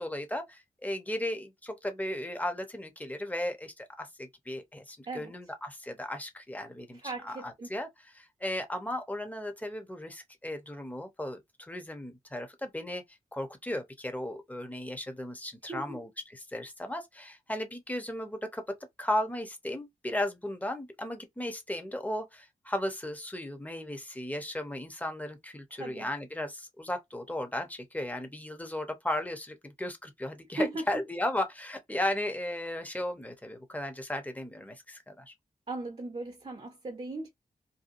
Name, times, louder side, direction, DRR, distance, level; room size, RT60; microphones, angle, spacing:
voice 1, 0.0-7.9 8.1-13.0 13.3-18.6 19.0-35.3, left 1 dB, 10° left, 0.8 m, -35 dB
voice 2, 6.9-7.7 15.7-16.0 25.7-26.1 30.5-30.8 35.7-37.3, right 2 dB, 40° right, 0.8 m, -37 dB
2.7 x 2.2 x 2.5 m
cardioid pair, 65°, 16 cm